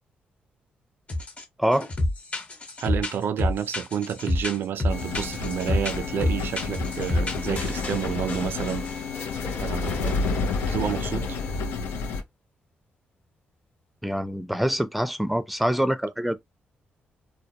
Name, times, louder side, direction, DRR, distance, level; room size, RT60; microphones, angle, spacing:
sound 1, 1.1-1.4 1.7-8.0 8.3-8.9, left 1 dB, 35° left, 1.1 m, -28 dB
voice 1, 2.8-8.9 9.6-10.3 10.6-11.3, right 9 dB, 65° right, 0.3 m, -30 dB
sound 2, 4.9-12.2, left 4 dB, 85° left, 0.6 m, -30 dB
sound 3, 7.6-11.8, left 4 dB, 55° left, 1.0 m, -40 dB
voice 2, 14.0-16.4, equal, ahead, 0.4 m, -25 dB
2.3 x 2.0 x 2.8 m
cardioid pair, 70°, 4 cm